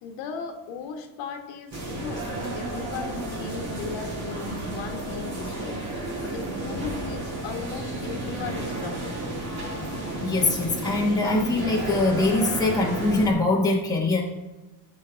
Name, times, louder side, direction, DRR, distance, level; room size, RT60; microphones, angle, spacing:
voice 1, 0.0-2.2 2.5-5.8 6.2-9.3, left 5 dB, 80° left, 4 dB, 1.5 m, -37 dB
sound 1, 1.7-13.3, right 1 dB, 35° right, 3.1 m, -32 dB
voice 2, 10.2-14.2, left 2 dB, 10° left, -2 dB, 1.3 m, -23 dB
12.5 x 5.5 x 3.4 m, 1.1 s
cardioid pair, 120°, 44 cm